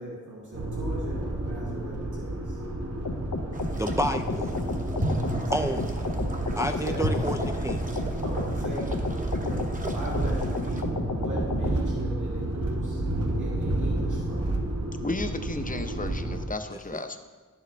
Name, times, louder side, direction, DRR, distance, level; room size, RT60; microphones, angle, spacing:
voice 1, 0.0-2.4 5.3-5.7 6.2-6.3 6.8-7.2 8.2-9.0 9.4-10.9 11.1-13.0 13.4-14.4, right 1 dB, 75° right, -5 dB, 2.1 m, -38 dB
sound 1, 0.5-16.5, right 1 dB, 55° right, 0.9 m, -31 dB
sound 2, 3.1-11.8, left 3 dB, 85° left, 0.8 m, -33 dB
sound 3, 3.5-10.8, right 1 dB, 25° right, 0.9 m, -35 dB
voice 2, 3.8-4.6 5.5-6.0 6.6-7.9 16.7-16.8, equal, 10° right, 5 dB, 0.3 m, -30 dB
voice 3, 15.0-17.2, left 2 dB, 25° left, 8 dB, 0.6 m, -33 dB
10.5 x 7.2 x 3.4 m, 1.4 s
wide cardioid pair, 50°, 31 cm